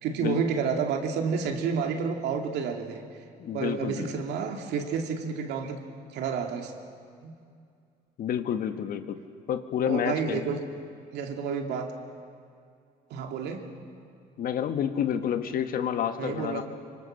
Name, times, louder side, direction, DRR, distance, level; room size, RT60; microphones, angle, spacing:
voice 1, 0.0-3.0 3.5-5.8 6.1-6.7 7.2-7.3 9.8-10.6 11.1-11.9 13.1-13.7 16.2-16.6, right 6 dB, 80° right, 4 dB, 2.5 m, -30 dB
voice 2, 3.4-4.1 8.2-9.2 9.5-10.5 14.4-16.6, left 9 dB, 60° left, 9 dB, 1.5 m, -29 dB
25.5 x 24.5 x 6.5 m, 2.3 s
cardioid pair, 110°, 17 cm